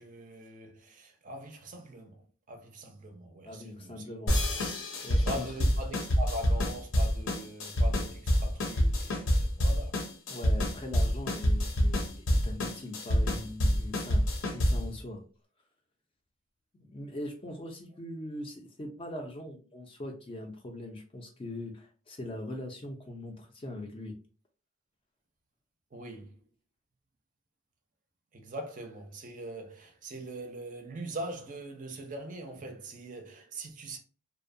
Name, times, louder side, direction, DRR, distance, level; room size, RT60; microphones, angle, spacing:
voice 1, 0.0-2.2 2.5-4.1 5.0-10.0 25.9-26.4 28.3-34.0, right 1 dB, 35° right, 0.4 m, -42 dB
voice 2, 3.4-4.3 5.0-5.5 10.3-15.2 16.7-24.2, left 1 dB, 25° left, 0.4 m, -41 dB
sound 1, 4.3-14.9, equal, 70° left, 0.6 m, -27 dB
2.6 x 2.1 x 2.5 m
head